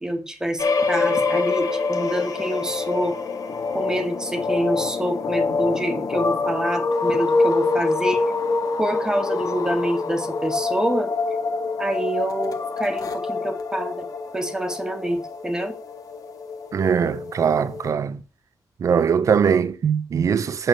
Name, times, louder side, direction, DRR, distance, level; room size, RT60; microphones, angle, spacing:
voice 1, 0.0-3.2 3.7-8.2 8.8-11.1 11.8-14.1 14.3-15.8, right 1 dB, 10° right, 1.7 m, -26 dB
sound 1, 0.6-17.9, left 4 dB, 65° left, 2.0 m, -25 dB
voice 2, 16.7-18.2 18.8-20.7, right 7 dB, 55° right, 0.8 m, -21 dB
9.0 x 7.1 x 6.9 m
wide cardioid pair, 165°, 7 cm